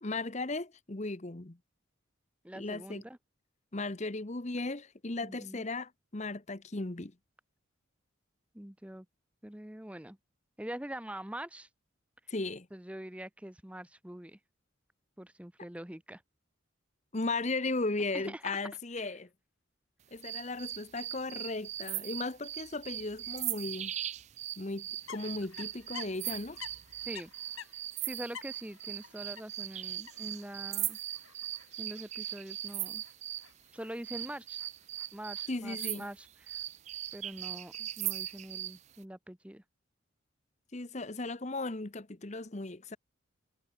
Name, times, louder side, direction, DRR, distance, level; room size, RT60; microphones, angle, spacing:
voice 1, 0.0-1.6 2.6-3.0 3.7-7.1 12.3-12.7 17.1-19.3 20.1-23.9 24.6-26.6 35.5-36.1 40.7-43.0, left 2 dB, 35° left, 1.0 m, -36 dB
voice 2, 2.4-3.2 5.2-5.7 8.5-9.1 9.4-10.2 10.6-11.7 12.7-14.4 15.2-16.2 18.1-18.4 27.0-27.3 28.0-31.0 31.8-33.0 33.7-34.6 35.1-36.6 37.1-39.6, right 1 dB, 5° right, 0.7 m, -44 dB
sound 1, 20.2-33.5 34.0-38.8, right 13 dB, 35° right, 0.3 m, -39 dB
sound 2, 25.0-35.7, left 7 dB, 85° left, 5.5 m, -52 dB
head